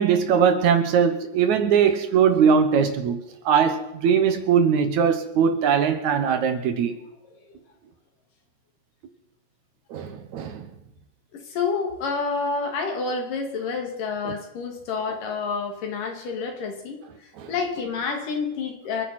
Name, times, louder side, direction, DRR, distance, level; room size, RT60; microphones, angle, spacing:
voice 1, 0.0-3.2 3.5-6.9 9.9-10.7 14.3-14.4 17.4-17.5, right 7 dB, 65° right, 2.3 m, -20 dB
voice 2, 11.3-19.0, left 4 dB, 75° left, 3.8 m, -29 dB
28.0 x 9.9 x 4.3 m
omnidirectional pair, 3.9 m